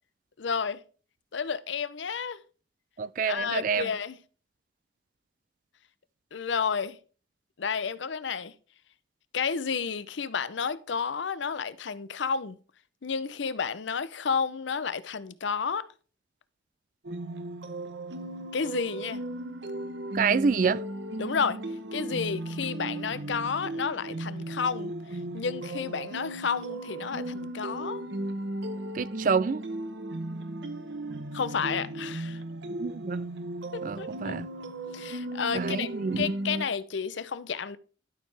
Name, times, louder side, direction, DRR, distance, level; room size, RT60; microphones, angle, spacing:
voice 1, 0.4-0.8 1.3-2.4 3.2-4.2 6.3-7.0 7.6-8.5 9.3-12.6 13.0-15.8 18.5-19.2 21.2-21.6 21.9-24.9 25.3-28.0 31.3-32.4 33.7-34.4 34.9-35.9 36.2-37.8, left 6 dB, 75° left, 0.6 m, -31 dB
voice 2, 3.0-3.9 20.1-20.8 28.9-29.6 32.8-33.2 33.8-34.5 35.5-36.3, right 5 dB, 45° right, 0.3 m, -27 dB
sound 1, 17.0-36.6, right 1 dB, 65° right, 0.9 m, -36 dB
12.0 x 6.4 x 3.3 m
head